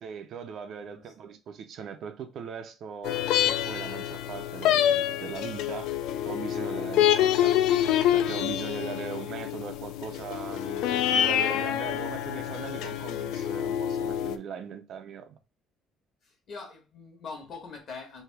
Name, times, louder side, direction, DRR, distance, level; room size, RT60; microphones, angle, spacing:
voice 1, 0.0-5.9 6.2-7.5 8.1-15.3, right 7 dB, 45° right, 0.4 m, -40 dB
sound 1, 3.0-14.4, left 11 dB, 75° left, 0.3 m, -27 dB
voice 2, 6.5-6.9 16.2-18.2, left 4 dB, 40° left, 1.2 m, -44 dB
3.3 x 2.6 x 4.5 m
cardioid pair, 175°, 0 cm